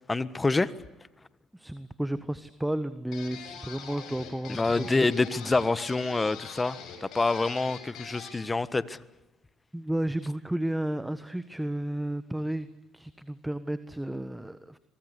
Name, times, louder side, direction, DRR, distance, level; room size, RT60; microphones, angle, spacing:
voice 1, 0.1-0.7 4.5-9.0, left 3 dB, 20° left, 16 dB, 1.4 m, -27 dB
voice 2, 1.5-5.1 9.7-12.7 12.9-14.8, right 1 dB, 5° right, 13 dB, 1.4 m, -32 dB
sound 1, 3.1-8.4, left 7 dB, 70° left, 7.5 m, -44 dB
24.5 x 22.5 x 8.3 m, 1.0 s
supercardioid pair, 70°, 0 cm